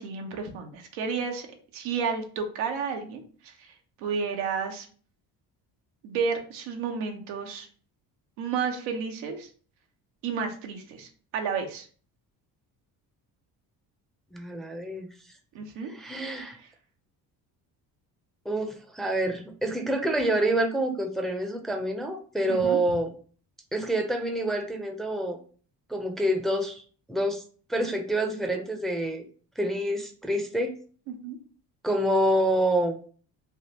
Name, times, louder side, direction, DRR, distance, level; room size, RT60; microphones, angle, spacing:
voice 1, 0.0-1.5 1.7-4.9 6.0-7.7 8.4-9.5 10.2-11.9 15.5-15.9 16.6-16.7 22.5-22.8 31.1-31.4, right 5 dB, 90° right, 4 dB, 0.8 m, -32 dB
voice 2, 14.3-15.1 15.9-16.6 18.5-23.1 23.7-25.4 25.9-26.8 27.1-27.4 27.7-29.2 29.6-30.7 31.8-32.9, right 1 dB, ahead, 4 dB, 0.5 m, -27 dB
3.6 x 2.4 x 2.8 m, 0.42 s
supercardioid pair, 70°, 45 cm